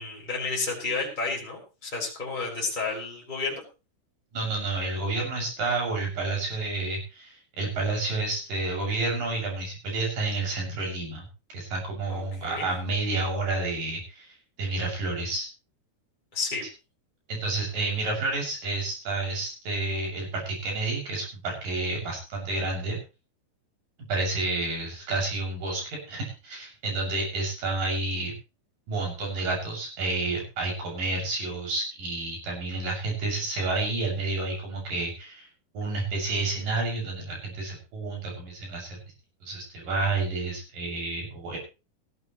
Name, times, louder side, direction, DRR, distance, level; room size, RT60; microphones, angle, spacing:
voice 1, 0.0-3.6 12.1-12.7 16.3-16.6, left 4 dB, 10° left, -2 dB, 5.8 m, -31 dB
voice 2, 4.3-11.2 11.5-15.5 17.3-23.0 24.1-28.3 28.9-35.5 35.7-39.0 39.4-41.6, right 3 dB, 55° right, 0 dB, 8.7 m, -30 dB
19.5 x 14.0 x 3.2 m, 0.31 s
omnidirectional pair, 4.7 m